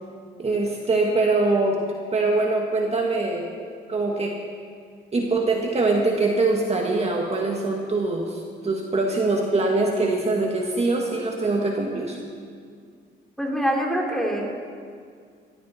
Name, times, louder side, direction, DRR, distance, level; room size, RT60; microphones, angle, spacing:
voice 1, 0.4-1.8 2.1-3.5 3.9-4.4 5.1-12.2, right 3 dB, 30° right, 0 dB, 1.9 m, -23 dB
voice 2, 13.4-14.6, equal, ahead, -1 dB, 3.1 m, -25 dB
17.5 x 14.0 x 4.4 m, 2.1 s
cardioid pair, 90°, 20 cm